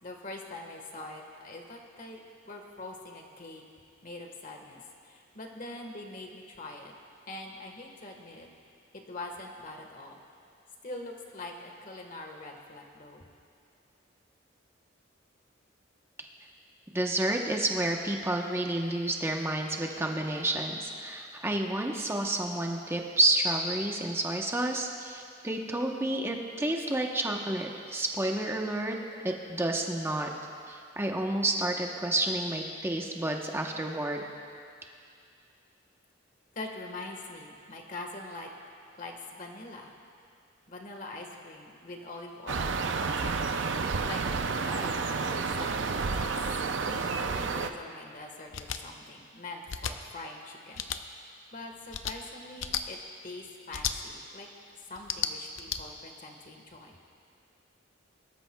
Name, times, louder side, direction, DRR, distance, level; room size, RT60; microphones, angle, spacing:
voice 1, 0.0-2.2 2.4-3.6 4.0-6.9 7.3-8.5 8.9-10.2 10.8-13.3 36.5-38.5 39.0-39.9 40.7-43.4 44.0-44.2 44.6-46.3 46.9-53.0 53.2-54.5 54.9-57.0, left 2 dB, 45° left, 2 dB, 1.5 m, -43 dB
voice 2, 16.9-29.0 29.2-30.3 30.7-34.2, right 1 dB, 15° right, 1 dB, 1.0 m, -30 dB
sound 1, 42.5-47.7, right 4 dB, 65° right, 0.6 m, -30 dB
sound 2, 48.5-48.8 49.7-49.9 50.7-51.0 51.9-52.1 52.6-52.8 53.7-53.9 54.9-55.8, left 8 dB, 75° left, 0.6 m, -33 dB
23.0 x 13.0 x 2.3 m, 2.3 s
head